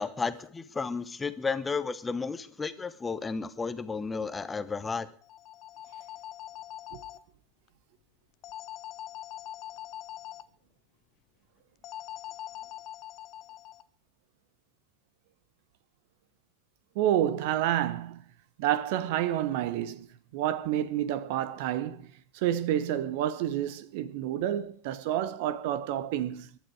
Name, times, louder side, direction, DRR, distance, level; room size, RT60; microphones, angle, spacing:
voice 1, 0.0-5.1, left 4 dB, 15° left, 1.0 m, -33 dB
sound 1, 5.2-7.2 8.4-10.4 11.8-13.8, left 13 dB, 35° left, 0.7 m, -43 dB
voice 2, 16.9-18.2 18.6-20.1 20.3-22.1 22.3-26.5, right 11 dB, 50° right, 1.1 m, -29 dB
23.0 x 11.5 x 4.8 m
figure-of-eight pair, 90°, 0 cm